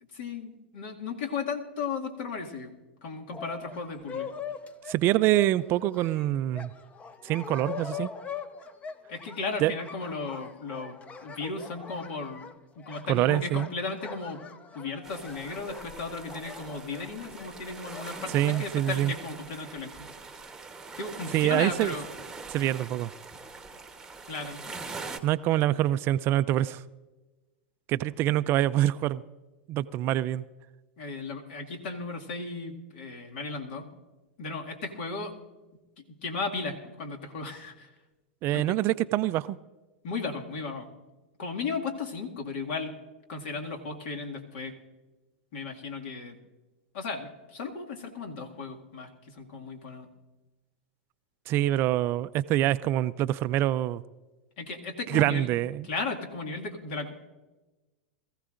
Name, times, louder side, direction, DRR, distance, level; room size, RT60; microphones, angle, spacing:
voice 1, 0.1-2.7 3.0-4.3 9.1-11.0 11.2-12.5 12.8-14.4 14.7-20.1 21.0-22.1 24.3-24.6 31.0-33.9 34.4-35.3 36.0-37.9 38.5-38.8 40.0-40.9 41.4-42.9 43.3-44.7 45.5-46.4 46.9-50.1 54.6-55.5 55.8-57.3, left 4 dB, 65° left, 2.1 m, -35 dB
sound 1, 3.3-18.6, left 6 dB, 20° left, 0.7 m, -42 dB
voice 2, 4.9-6.7 7.2-8.1 9.6-9.7 13.1-13.7 18.3-19.1 21.3-21.9 22.5-23.1 25.2-26.8 27.9-29.2 29.7-30.4 38.4-39.6 51.5-54.0 55.1-55.9, right 14 dB, 40° right, 0.4 m, -25 dB
sound 2, 15.0-25.2, right 4 dB, 10° right, 1.1 m, -43 dB
21.5 x 15.0 x 2.5 m
hypercardioid pair, 115°, 6 cm